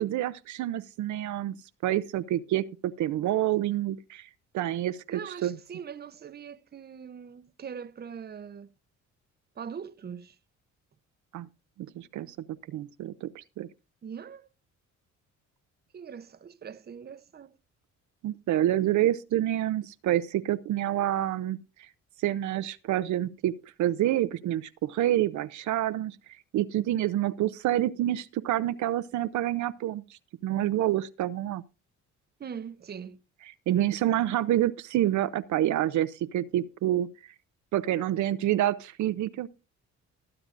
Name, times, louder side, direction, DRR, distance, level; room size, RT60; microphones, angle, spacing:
voice 1, 0.0-1.5 1.8-4.3 4.5-5.5 11.3-11.5 12.0-12.4 12.7-13.7 18.2-21.9 22.2-23.5 23.8-26.2 26.5-31.6 33.7-37.1 37.7-39.5, right 13 dB, 70° right, 0.6 m, -28 dB
voice 2, 5.1-8.7 9.6-10.4 14.0-14.5 15.9-17.6 32.4-33.2, right 7 dB, 35° right, 0.7 m, -41 dB
20.5 x 8.7 x 2.5 m
cardioid pair, 90°, 30 cm